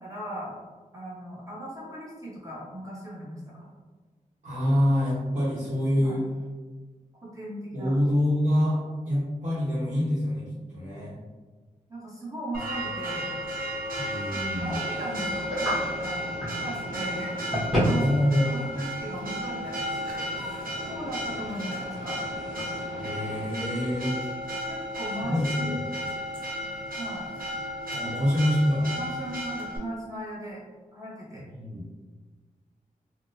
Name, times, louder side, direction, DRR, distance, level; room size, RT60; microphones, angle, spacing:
voice 1, 0.0-0.6 0.9-3.7 6.0-6.2 7.2-8.0 11.9-13.3 14.5-18.0 18.5-20.5 20.8-22.2 24.7-25.8 27.0-27.3 28.0-28.1 29.0-30.6 30.9-31.4, right 1 dB, 20° right, -6 dB, 1.1 m, -38 dB
voice 2, 4.4-6.2 7.7-8.8 9.0-10.5 10.7-11.2 13.9-14.8 18.0-18.5 22.9-24.1 25.2-26.1 27.9-29.1 31.5-31.8, left 1 dB, 50° right, -11 dB, 1.2 m, -26 dB
Church bell, 12.5-29.8, equal, 85° right, 0.7 m, -34 dB
sound 1, 14.6-23.5, equal, ahead, 1.4 m, -33 dB
3.6 x 2.2 x 2.7 m, 1.4 s
wide cardioid pair, 110°, 14 cm